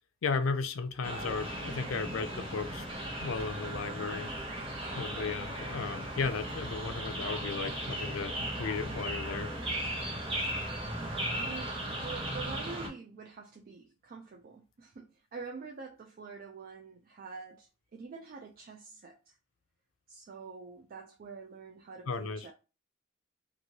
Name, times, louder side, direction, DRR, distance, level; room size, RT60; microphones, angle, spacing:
voice 1, 0.2-2.9 3.2-4.3 5.0-9.5 22.1-22.5, left 4 dB, 80° left, 0.4 m, -35 dB
sound 1, 1.0-12.9, right 1 dB, 30° right, 1.0 m, -37 dB
voice 2, 11.0-19.4 20.1-22.5, right 4 dB, 45° right, 0.4 m, -46 dB
3.0 x 2.6 x 2.7 m
head